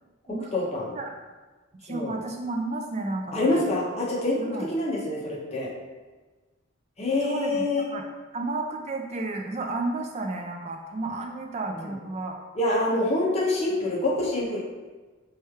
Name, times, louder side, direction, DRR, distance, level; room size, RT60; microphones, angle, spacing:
voice 1, 0.5-0.9 1.9-2.1 3.3-4.4 4.7-5.7 7.0-7.9 11.7-11.9 12.6-14.6, left 2 dB, 30° left, -3 dB, 0.6 m, -26 dB
voice 2, 1.8-3.6 4.4-4.7 7.2-8.0 8.3-12.3, right 2 dB, 30° right, 3 dB, 0.3 m, -32 dB
3.1 x 2.3 x 4.3 m, 1.3 s
head